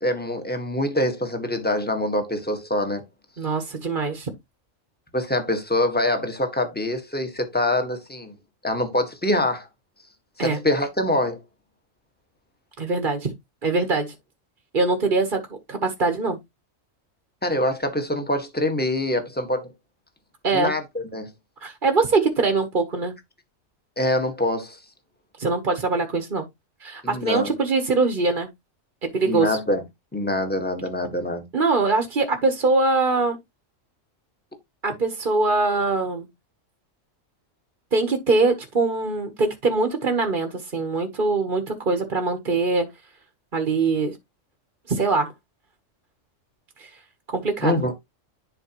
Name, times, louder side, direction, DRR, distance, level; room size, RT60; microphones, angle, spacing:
voice 1, 0.0-3.1 5.1-8.4 8.6-9.7 10.4-11.4 17.4-19.7 20.5-21.3 24.0-24.8 27.0-27.5 29.3-29.8 30.1-31.4 47.6-47.9, left 1 dB, 5° left, 1.5 m, -24 dB
voice 2, 3.4-4.3 10.4-10.6 12.8-13.3 13.6-14.1 14.7-15.4 15.7-16.4 20.4-20.7 21.6-23.1 25.4-26.5 26.8-28.5 29.0-29.6 31.5-33.4 34.8-36.3 37.9-42.9 43.5-44.2 44.9-45.3 46.8-46.9 47.3-47.8, right 3 dB, 40° right, 1.3 m, -23 dB
11.0 x 5.0 x 3.0 m
omnidirectional pair, 1.3 m